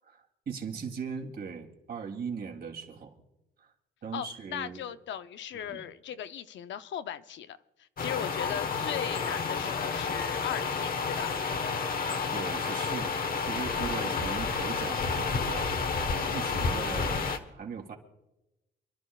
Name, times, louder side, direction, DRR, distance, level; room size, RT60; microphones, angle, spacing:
voice 1, 0.5-3.1 3.6-3.7 4.0-4.8 5.5-5.8 12.3-15.8 16.1-18.0, right 6 dB, 55° right, 1 dB, 2.9 m, -39 dB
voice 2, 4.1-11.4, left 10 dB, 70° left, 11 dB, 0.7 m, -38 dB
sound 1, 8.0-17.4, left 5 dB, 45° left, 1.3 m, -30 dB
28.0 x 12.0 x 2.4 m, 0.95 s
cardioid pair, 90°, 20 cm